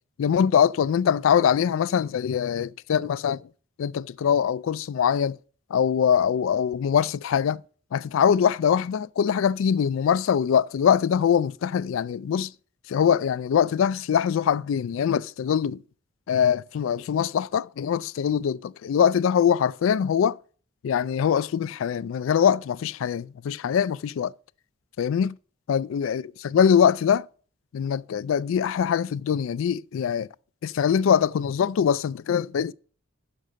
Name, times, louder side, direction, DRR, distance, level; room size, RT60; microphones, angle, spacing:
voice 1, 0.2-3.4 3.8-5.4 5.7-7.6 7.9-12.5 12.9-15.8 16.3-20.4 20.8-24.3 25.0-25.4 25.7-27.3 27.7-30.3 30.6-32.7, left 8 dB, 80° left, 0.3 m, -23 dB
6.6 x 6.5 x 7.4 m
head